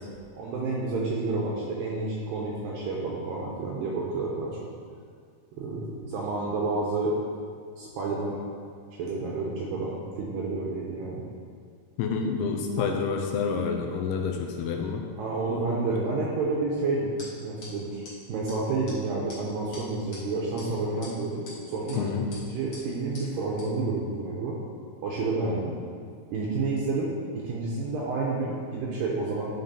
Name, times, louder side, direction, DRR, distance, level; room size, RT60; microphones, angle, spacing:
voice 1, 0.4-4.6 5.6-7.1 7.8-8.4 9.0-11.2 12.8-12.9 15.2-17.1 17.4-18.0 18.3-22.0 22.4-24.6 25.0-25.7 26.3-29.5, right 3 dB, 80° right, -4 dB, 2.1 m, -30 dB
voice 2, 12.0-15.0 21.9-22.3, left 5 dB, 80° left, 3 dB, 2.5 m, -28 dB
sound 1, 17.2-17.3 17.6-17.7 18.0-18.1 18.5-18.6 18.9-19.0 19.3-19.4 19.7-20.2 20.6-20.7 21.0-21.6 21.9-22.0 22.3-22.4 22.7-22.8 23.1-23.3 23.6-23.7, left 3 dB, 50° left, 1.6 m, -44 dB
11.0 x 3.8 x 4.1 m, 2.2 s
omnidirectional pair, 4.8 m